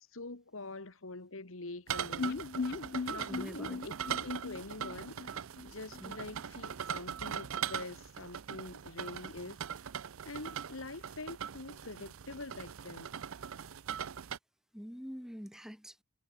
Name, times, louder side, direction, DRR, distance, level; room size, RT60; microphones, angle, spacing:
voice 1, 0.1-2.5 3.1-5.3 5.6-9.6 10.3-13.1, left 2 dB, 80° left, 2.0 m, -45 dB
sound 1, 1.9-14.4, right 8 dB, 90° right, 0.6 m, -41 dB
sound 2, 2.2-6.0 6.3-6.4 6.7-6.8, left 4 dB, 50° left, 0.4 m, -39 dB
voice 2, 3.3-3.8 6.0-6.2 14.7-16.0, equal, ahead, 1.3 m, -45 dB
head